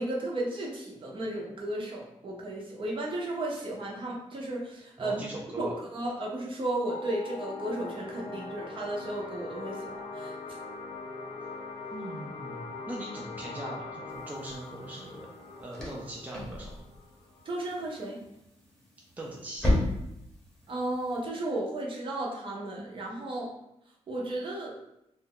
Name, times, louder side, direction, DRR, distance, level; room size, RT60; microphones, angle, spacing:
voice 1, 0.0-5.2 5.6-10.3 17.5-18.2 20.7-23.5 24.1-24.7, right 1 dB, 50° right, -2 dB, 0.7 m, -34 dB
voice 2, 5.0-5.7 11.9-15.3 15.6-16.8 19.2-19.7, right 1 dB, 15° right, -3 dB, 0.5 m, -40 dB
sound 1, 6.8-17.9, left 3 dB, 50° left, 0.5 m, -42 dB
sound 2, 14.1-21.2, left 1 dB, 5° left, 0.9 m, -35 dB
2.6 x 2.2 x 3.6 m, 0.83 s
wide cardioid pair, 135°, 11 cm